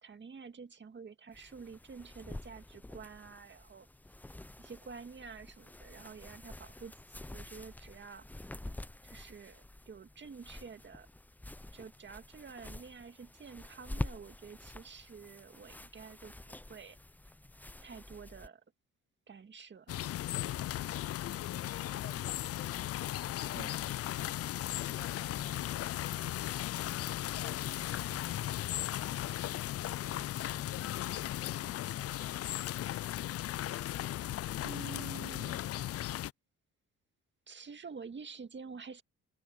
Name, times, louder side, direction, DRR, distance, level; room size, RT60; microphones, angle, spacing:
voice 1, 0.0-3.9 4.6-8.6 9.0-11.1 11.7-17.0 17.8-18.6 19.3-20.1 23.5-23.7 34.6-35.6 37.5-39.0, right 5 dB, 40° right, 2.0 m, -49 dB
sound 1, 1.3-18.5, left 1 dB, 5° left, 0.6 m, -47 dB
sound 2, 19.9-36.3, left 13 dB, 50° left, 0.4 m, -36 dB
voice 2, 21.2-26.4 27.0-28.6, left 4 dB, 30° left, 7.1 m, -53 dB
cardioid pair, 90°, 30 cm